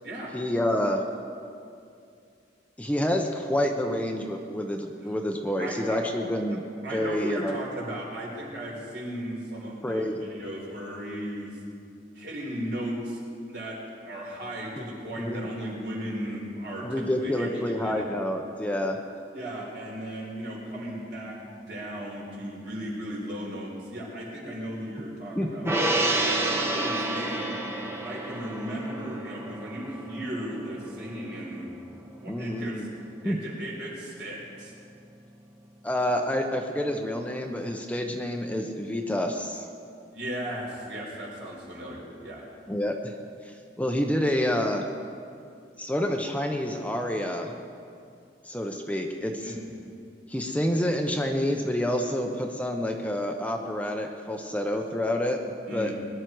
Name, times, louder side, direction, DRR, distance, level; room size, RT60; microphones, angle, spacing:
voice 1, 0.3-1.0 2.8-6.6 6.9-7.5 9.8-10.3 14.8-14.9 15.2-15.5 16.8-19.0 25.3-25.7 32.2-32.9 33.2-33.4 35.8-39.7 42.7-43.1 43.4-44.8 45.8-47.6 48.4-49.5 50.3-55.9, left 1 dB, 10° left, 3 dB, 0.8 m, -28 dB
voice 2, 5.6-6.0 6.8-11.6 12.1-13.2 13.5-13.8 14.0-18.0 19.3-25.7 26.1-27.6 28.0-31.9 32.2-32.9 33.2-34.7 40.1-42.4 49.4-49.6 55.7-55.9, equal, 65° right, -3 dB, 4.3 m, -36 dB
Gong, 25.7-32.3 32.6-32.8, right 2 dB, 15° right, 1.1 m, -30 dB
21.0 x 11.5 x 4.7 m, 2.4 s
head